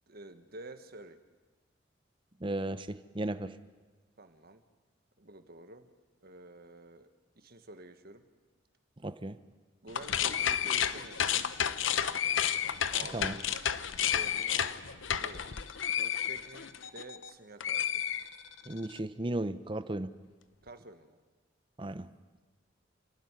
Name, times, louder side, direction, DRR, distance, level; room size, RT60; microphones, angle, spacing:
voice 1, 0.1-1.2 4.2-4.6 5.2-5.9 6.2-7.1 7.3-8.2 9.8-11.4 12.9-13.5 14.1-15.4 15.9-17.8 20.6-21.2, right 2 dB, 55° right, 8 dB, 1.5 m, -49 dB
voice 2, 2.4-3.5 9.0-9.4 13.1-13.4 18.7-20.1 21.8-22.1, right 1 dB, 25° right, 12 dB, 0.8 m, -35 dB
sound 1, 9.9-17.3 17.6-18.8, left 9 dB, 80° left, 0.8 m, -31 dB
27.5 x 12.0 x 9.7 m, 1.4 s
head